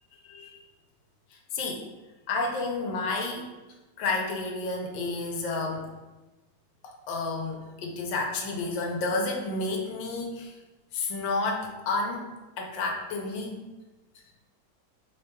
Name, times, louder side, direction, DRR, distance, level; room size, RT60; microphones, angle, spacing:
voice 1, 0.2-0.6 1.3-1.8 2.3-3.5 4.0-5.9 6.8-10.6 10.9-12.2 12.6-13.6, left 3 dB, 85° left, 0 dB, 1.3 m, -31 dB
3.3 x 2.2 x 4.2 m, 1.1 s
omnidirectional pair, 2.0 m